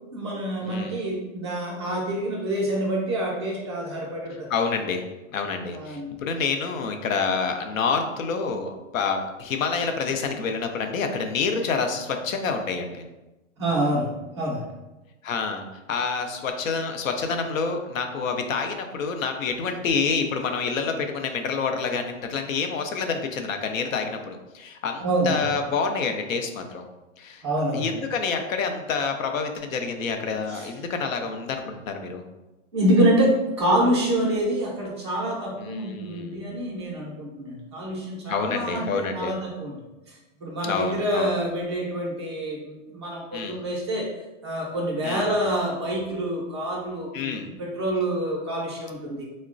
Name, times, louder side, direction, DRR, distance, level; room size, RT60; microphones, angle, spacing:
voice 1, 0.1-4.5 5.7-6.1 13.6-14.1 14.4-14.6 25.0-25.4 27.4-27.9 30.5-30.7 32.7-39.7 40.1-44.1 44.4-49.2, right 1 dB, 25° right, -4 dB, 0.3 m, -26 dB
voice 2, 0.6-1.0 4.5-5.0 5.3-13.0 15.2-26.8 27.2-27.4 27.7-32.2 35.6-36.7 38.3-39.3 40.6-41.3 43.3-43.6 45.0-45.3 47.1-47.5, left 5 dB, 90° left, 5 dB, 0.6 m, -28 dB
3.9 x 2.1 x 2.4 m, 1.0 s
hypercardioid pair, 160°, 39 cm